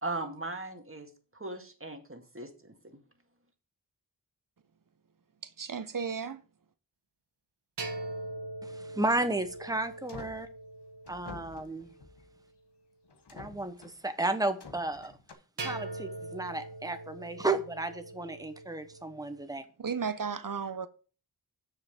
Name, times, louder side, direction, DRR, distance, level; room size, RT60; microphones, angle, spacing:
voice 1, 0.0-3.0, right 2 dB, 30° right, 1.9 m, -39 dB
voice 2, 5.4-6.4 19.8-20.9, right 6 dB, 50° right, 0.9 m, -34 dB
sound 1, 7.8-12.1 15.6-19.4, right 2 dB, 85° right, 1.3 m, -42 dB
voice 3, 8.6-10.5 11.1-11.9 13.3-15.1 15.6-19.6, right 2 dB, 10° right, 1.1 m, -33 dB
sound 2, 9.4-10.5 11.1-12.3 13.1-14.0 14.6-15.3, left 4 dB, 75° left, 1.2 m, -49 dB
6.7 x 5.5 x 6.3 m
cardioid pair, 40°, 41 cm